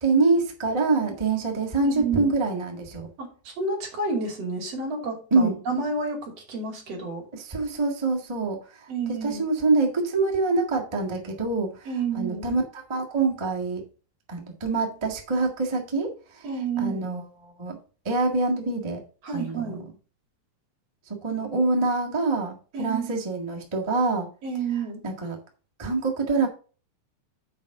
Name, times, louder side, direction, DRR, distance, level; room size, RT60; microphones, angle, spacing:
voice 1, 0.0-3.1 5.3-5.6 7.3-11.9 12.1-13.8 14.3-16.5 16.8-17.8 18.0-19.0 19.3-19.9 21.1-24.3 25.0-25.4 25.8-26.5, right 3 dB, 30° right, -1 dB, 0.4 m, -25 dB
voice 2, 1.8-2.3 3.2-3.3 3.6-7.2 8.9-9.5 11.9-12.5 16.4-17.0 19.2-19.8 22.7-23.1 24.4-25.0, right 4 dB, 50° right, 0 dB, 3.6 m, -30 dB
7.2 x 5.0 x 6.5 m, 0.38 s
omnidirectional pair, 3.8 m